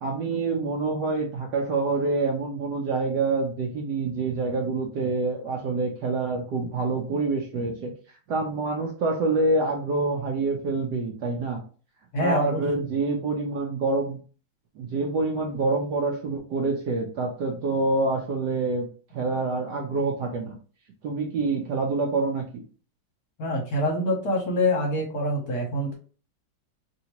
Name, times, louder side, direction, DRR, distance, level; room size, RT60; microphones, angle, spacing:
voice 1, 0.0-7.9 8.3-11.6 12.2-14.2 14.8-18.9 19.1-20.6 21.0-22.6, right 3 dB, 70° right, 1 dB, 1.1 m, -26 dB
voice 2, 12.1-12.6 23.4-25.9, left 1 dB, 55° left, -1 dB, 1.2 m, -25 dB
3.2 x 2.9 x 2.9 m, 0.38 s
omnidirectional pair, 2.3 m